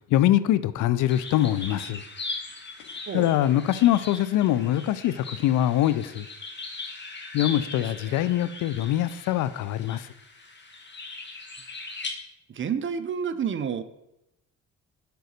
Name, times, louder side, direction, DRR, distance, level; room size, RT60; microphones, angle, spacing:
voice 1, 0.1-2.0 3.1-6.3 7.3-10.1, left 13 dB, 80° left, 0.5 m, -23 dB
sound 1, 1.1-12.1, left 3 dB, 35° left, 1.5 m, -40 dB
voice 2, 12.5-13.8, right 7 dB, 40° right, 0.6 m, -29 dB
6.8 x 3.9 x 6.5 m
cardioid pair, 90°, 30 cm